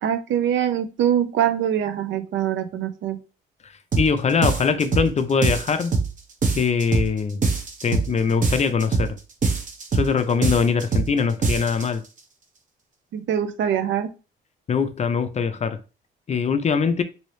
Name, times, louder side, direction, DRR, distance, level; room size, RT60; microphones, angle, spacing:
voice 1, 0.0-3.2 13.1-14.1, right 9 dB, 70° right, 0.5 m, -23 dB
sound 1, 3.9-4.1 4.4-5.1 5.4-6.1 6.4-7.1 7.4-8.1 8.4-9.1 9.4-10.1 10.4-11.1 11.4-11.9, right 4 dB, 40° right, 0.8 m, -23 dB
voice 2, 4.0-5.9 6.5-7.4 7.8-9.2 9.9-12.0 14.7-15.8 16.3-17.0, left 6 dB, 35° left, 0.4 m, -22 dB
3.0 x 2.7 x 3.1 m
cardioid pair, 90°, 20 cm